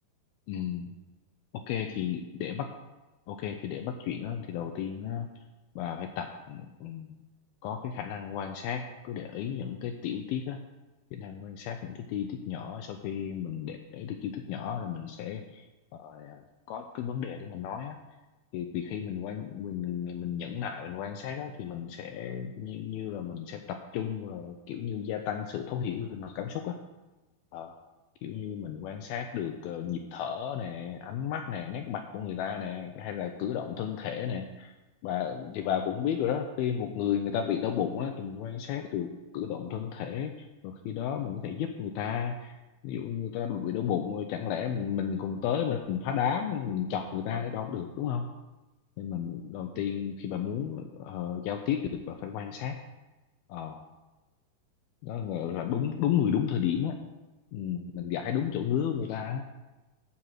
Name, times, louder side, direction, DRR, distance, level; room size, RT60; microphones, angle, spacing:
voice 1, 0.5-1.0 1.7-2.7 3.3-5.3 5.8-7.2 7.6-10.6 11.1-15.6 16.0-16.4 16.7-18.0 18.5-26.8 27.5-27.7 28.2-34.7 35.0-40.3 40.6-42.6 42.8-48.3 49.0-52.8 53.5-53.8 55.0-57.0 57.5-59.4, left 8 dB, 80° left, 5 dB, 2.3 m, -33 dB
11.5 x 4.5 x 8.0 m, 1.1 s
omnidirectional pair, 4.9 m